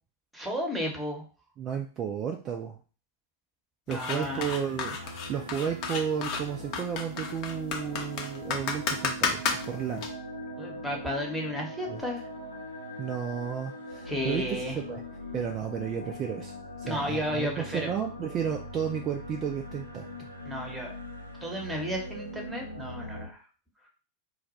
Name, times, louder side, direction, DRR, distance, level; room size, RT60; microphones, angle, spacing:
voice 1, 0.3-1.2 3.9-4.4 10.6-12.2 14.1-14.8 16.8-17.9 20.4-20.9 21.4-23.4, equal, 5° right, 0 dB, 0.9 m, -33 dB
voice 2, 1.6-2.8 3.9-10.1 11.9-12.0 13.0-14.6 14.9-15.0 15.3-16.5 16.8-20.3, right 8 dB, 30° right, 2 dB, 0.3 m, -33 dB
sound 1, 3.9-10.1, left 6 dB, 40° left, 0.6 m, -32 dB
sound 2, 4.2-23.3, equal, 90° right, 0.5 m, -41 dB
2.3 x 2.2 x 3.9 m, 0.37 s
figure-of-eight pair, 90°, 0 cm